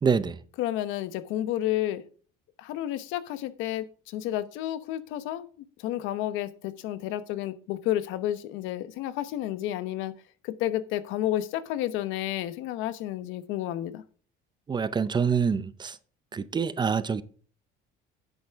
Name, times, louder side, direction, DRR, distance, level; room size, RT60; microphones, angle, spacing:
voice 1, 0.0-0.4 14.7-16.0 16.3-17.2, right 6 dB, 20° right, 0.6 m, -26 dB
voice 2, 0.6-2.0 2.6-10.1 10.4-14.0, left 13 dB, 80° left, 1.0 m, -31 dB
10.5 x 8.1 x 3.6 m
cardioid pair, 130°, 20 cm